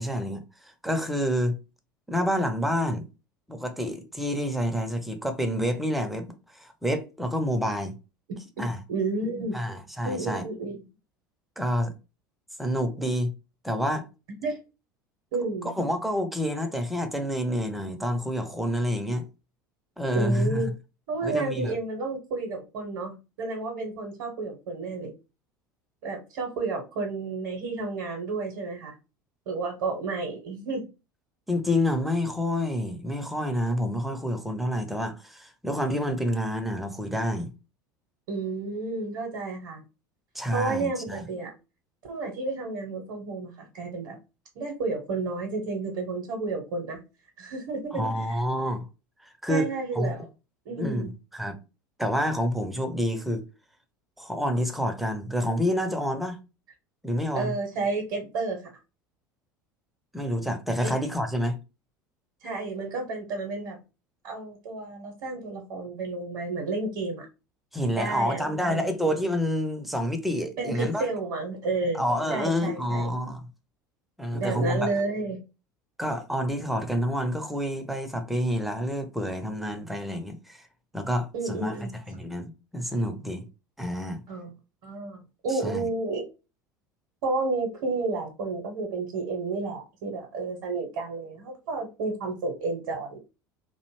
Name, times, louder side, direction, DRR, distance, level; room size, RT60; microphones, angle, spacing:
voice 1, 0.0-1.6 2.1-3.1 3.5-7.9 8.6-8.8 9.5-10.4 11.6-11.9 12.6-13.3 13.6-14.0 15.8-19.2 20.0-20.7 21.2-21.7 31.5-37.5 40.3-41.2 47.9-48.9 49.2-49.7 49.9-50.1 50.8-51.1 51.3-51.6 52.0-53.4 54.2-56.4 57.0-57.5 60.1-61.6 67.7-71.1 71.9-73.5 74.2-74.9 76.0-80.6 80.9-81.8 82.1-83.5 83.8-84.2 85.5-85.8, equal, ahead, 0.5 m, -28 dB
voice 2, 8.9-9.6 10.0-10.8 14.4-14.6 15.3-15.7 20.1-20.7 21.1-25.1 26.0-28.9 29.5-30.9 38.3-39.8 40.5-41.5 42.1-44.2 44.6-47.0 47.4-48.4 49.5-50.3 50.7-51.1 57.3-58.6 60.8-60.9 62.4-63.8 64.2-67.3 67.9-68.9 70.6-72.0 72.3-73.1 74.3-75.4 81.3-81.9 84.3-84.5 84.8-86.2 87.2-93.2, right 3 dB, 55° right, 0.7 m, -31 dB
2.5 x 2.1 x 2.9 m
figure-of-eight pair, 70°, 11 cm